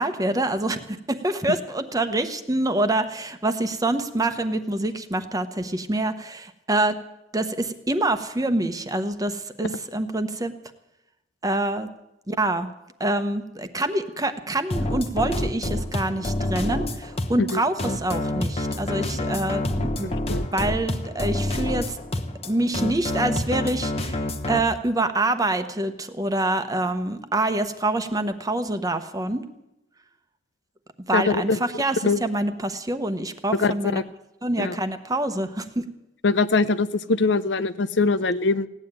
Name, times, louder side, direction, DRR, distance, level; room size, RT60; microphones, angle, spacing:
voice 1, 0.0-7.0 7.3-10.5 11.4-11.9 12.3-12.7 13.0-20.1 20.5-22.0 22.5-29.4 31.1-34.0 34.4-35.9, right 2 dB, 20° right, 9 dB, 1.0 m, -26 dB
sound 1, 14.7-24.6, left 1 dB, 35° left, 1.2 m, -27 dB
voice 2, 20.0-20.5 31.1-31.6 32.0-32.2 33.5-34.0 34.6-34.8 36.2-38.7, left 3 dB, 75° left, 14 dB, 0.6 m, -22 dB
17.0 x 9.7 x 8.9 m, 0.88 s
head